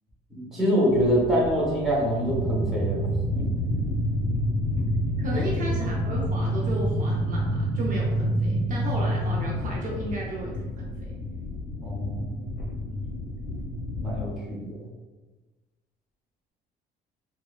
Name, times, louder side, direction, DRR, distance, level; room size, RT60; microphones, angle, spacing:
voice 1, 0.3-3.1 3.4-3.5 5.3-5.4 11.8-12.3 14.0-14.7, equal, ahead, -7 dB, 1.0 m, -25 dB
sound 1, 0.9-14.3, left 2 dB, 60° left, 0.7 m, -34 dB
sound 2, 2.2-9.6, right 1 dB, 85° right, 1.0 m, -27 dB
voice 2, 5.2-11.1, right 1 dB, 50° right, -3 dB, 0.5 m, -34 dB
3.0 x 2.0 x 2.3 m, 1.2 s
cardioid pair, 110°, 17 cm